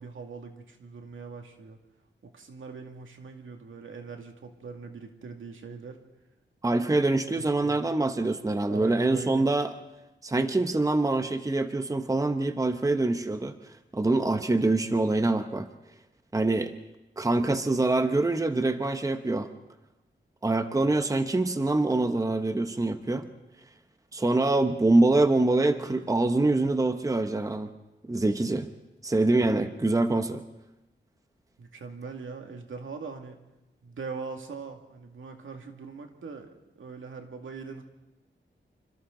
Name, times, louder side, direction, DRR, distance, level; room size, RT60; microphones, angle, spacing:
voice 1, 0.0-1.8 2.2-6.0 7.3-7.8 8.7-9.5 31.6-33.4 33.8-36.5 36.8-37.8, right 4 dB, 85° right, 3 dB, 2.3 m, -41 dB
voice 2, 6.6-9.7 10.2-13.5 13.9-15.7 16.3-16.7 17.2-19.5 20.4-23.3 24.1-27.7 28.1-28.7 29.0-30.4, right 2 dB, 15° right, 8 dB, 1.0 m, -25 dB
27.0 x 26.0 x 3.9 m, 0.99 s
wide cardioid pair, 130°, 20 cm